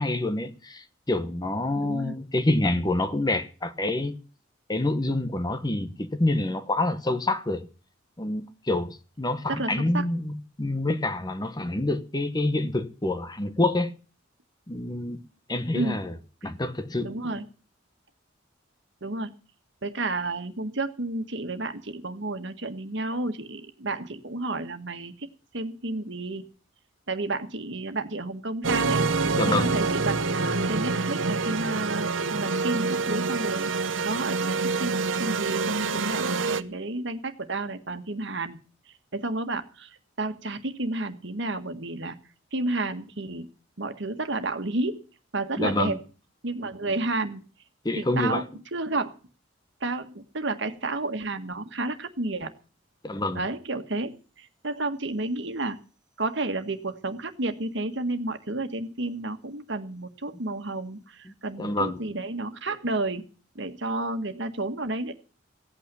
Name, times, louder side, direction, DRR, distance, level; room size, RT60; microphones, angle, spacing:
voice 1, 0.0-4.2 4.7-7.7 8.2-13.9 14.7-15.2 15.5-16.1 16.4-17.2 29.3-29.7 45.6-46.0 47.8-48.4 53.0-53.4 61.6-62.0, left 2 dB, 20° left, 1.0 m, -27 dB
voice 2, 1.7-2.2 9.5-10.0 15.7-16.0 16.4-16.5 17.0-17.4 19.0-19.3 19.8-25.3 25.5-26.4 27.1-29.0 29.5-33.7 34.0-38.6 39.1-42.2 42.5-43.5 43.8-45.0 45.3-46.0 46.4-47.4 48.0-48.4 48.7-49.1 49.8-52.5 53.3-55.8 56.2-63.2 63.5-65.1, right 2 dB, 65° right, 1.6 m, -31 dB
sound 1, 28.6-36.6, right 4 dB, 80° right, 0.9 m, -26 dB
16.5 x 9.0 x 6.9 m
head